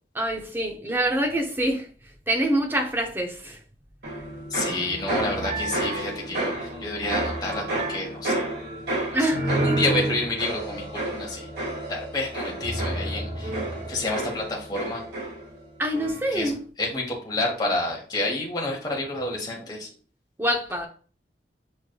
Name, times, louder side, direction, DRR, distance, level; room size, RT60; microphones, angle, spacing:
voice 1, 0.1-1.9 2.3-3.6 9.1-9.5 15.8-16.6 20.4-20.9, right 1 dB, 15° right, 0.7 m, -25 dB
sound 1, 4.0-15.6 15.9-16.4, right 1 dB, 75° right, 1.9 m, -30 dB
voice 2, 4.5-8.4 9.5-11.5 11.9-13.5 13.9-15.0 16.3-19.9, left 2 dB, 25° left, 1.1 m, -29 dB
6.4 x 3.2 x 2.3 m
head